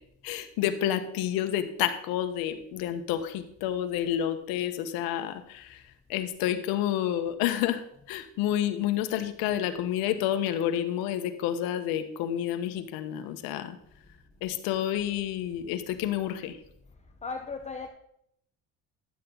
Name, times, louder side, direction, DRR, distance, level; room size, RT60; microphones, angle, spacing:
voice 1, 0.2-5.8 6.1-7.8 8.1-13.8 14.4-16.6, left 11 dB, 75° left, 1.3 m, -29 dB
voice 2, 17.2-17.9, left 4 dB, 20° left, 0.9 m, -36 dB
12.0 x 9.0 x 4.0 m
supercardioid pair, 95°, 36 cm